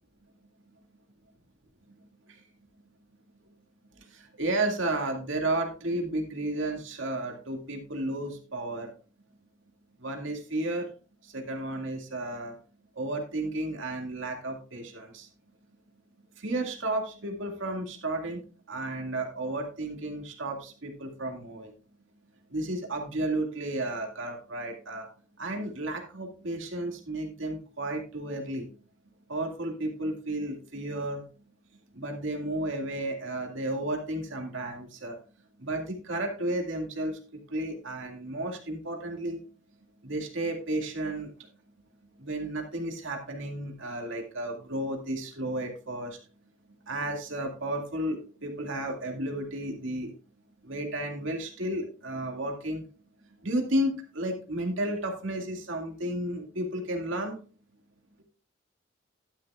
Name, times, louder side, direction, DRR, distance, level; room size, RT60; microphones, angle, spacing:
voice 1, 4.0-8.9 10.0-10.9 11.2-12.5 13.0-15.3 16.4-21.7 22.5-25.1 25.4-28.7 29.3-31.2 31.9-35.2 35.6-39.4 40.0-41.5 42.2-46.2 46.8-50.2 50.6-52.8 53.4-57.4, right 1 dB, 85° right, 2 dB, 2.2 m, -33 dB
11.5 x 9.9 x 2.4 m, 0.37 s
head